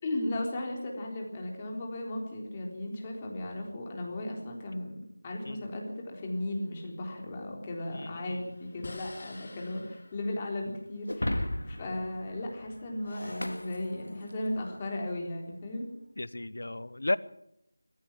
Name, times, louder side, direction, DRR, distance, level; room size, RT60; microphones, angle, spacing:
voice 1, 0.0-5.0 5.2-15.9, left 1 dB, 20° left, 0 dB, 3.9 m, -36 dB
sound 1, 7.8-12.4, left 2 dB, 45° left, 4.1 m, -51 dB
voice 2, 7.9-8.4 16.2-17.2, left 2 dB, 60° left, 19 dB, 0.9 m, -34 dB
Shatter, 11.1-14.6, left 1 dB, 75° left, 2.1 m, -36 dB
22.5 x 15.0 x 7.5 m, 0.78 s
figure-of-eight pair, 170°, 0 cm